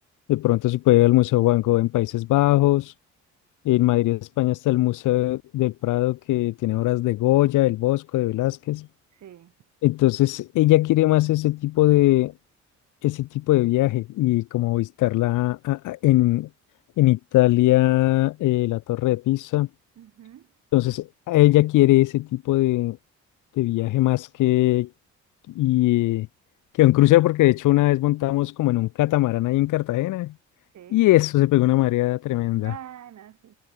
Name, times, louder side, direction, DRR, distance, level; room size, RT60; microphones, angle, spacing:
voice 1, 0.3-2.9 3.6-8.9 9.8-12.3 13.0-16.5 17.0-19.7 20.7-23.0 23.6-24.9 25.5-26.3 26.8-30.3 30.9-32.7, left 17 dB, 85° left, 1.0 m, -20 dB
voice 2, 9.1-9.5 20.0-20.5 30.7-31.0 32.6-33.6, right 11 dB, 65° right, 3.7 m, -44 dB
cardioid pair, 90°, 30 cm